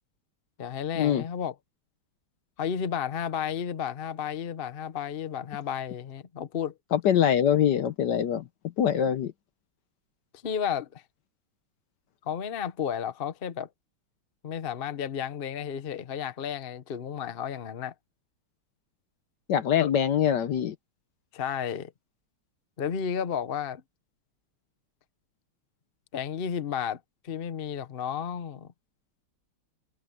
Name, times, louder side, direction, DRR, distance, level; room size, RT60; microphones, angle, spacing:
voice 1, 0.6-1.5 2.6-6.7 10.4-11.0 12.3-13.7 14.4-17.9 19.8-19.9 21.3-21.9 22.8-23.8 26.1-28.7, left 8 dB, 40° left, 0.8 m, -32 dB
voice 2, 6.9-8.5 8.8-9.3 19.5-20.7, left 9 dB, 65° left, 1.3 m, -23 dB
omnidirectional pair, 2.3 m